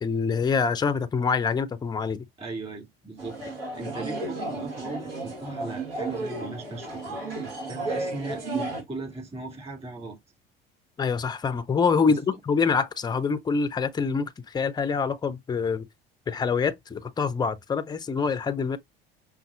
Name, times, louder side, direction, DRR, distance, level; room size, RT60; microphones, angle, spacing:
voice 1, 0.0-2.2 11.0-15.8 16.3-18.8, left 5 dB, 15° left, 0.5 m, -25 dB
voice 2, 2.4-3.4 3.7-10.2 12.1-12.2, right 2 dB, 20° right, 2.7 m, -38 dB
sound 1, 3.2-8.8, right 2 dB, 75° right, 1.6 m, -33 dB
5.2 x 2.4 x 2.5 m
hypercardioid pair, 70°, 29 cm